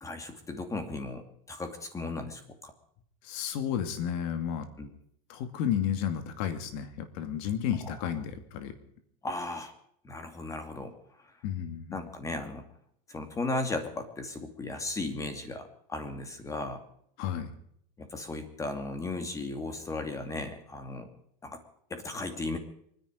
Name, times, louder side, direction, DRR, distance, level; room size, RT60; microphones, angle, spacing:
voice 1, 0.0-2.7 4.8-4.9 7.8-8.1 9.2-9.7 10.0-10.9 11.9-12.6 13.1-16.8 18.0-21.1 21.4-21.6 21.9-22.6, left 2 dB, 15° left, 7 dB, 2.6 m, -36 dB
voice 2, 3.2-4.7 5.3-8.7 11.4-12.0 17.2-17.5, left 9 dB, 65° left, 9 dB, 2.5 m, -32 dB
24.0 x 11.0 x 5.1 m, 0.68 s
supercardioid pair, 135°, 19 cm